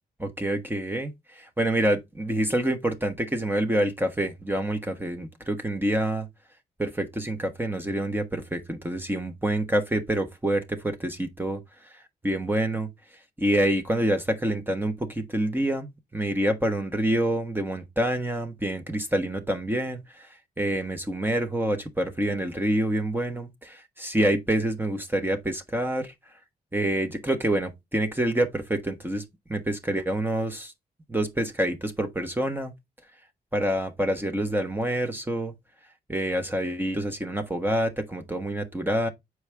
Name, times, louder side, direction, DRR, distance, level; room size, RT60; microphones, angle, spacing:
voice 1, 0.4-6.3 6.8-11.6 12.2-12.9 13.4-20.0 20.6-26.1 26.7-29.2 29.5-30.7 31.1-32.7 33.5-35.5 36.1-39.1, right 1 dB, 10° right, 1.2 m, -27 dB
7.0 x 4.8 x 3.4 m
cardioid pair, 90°, 17 cm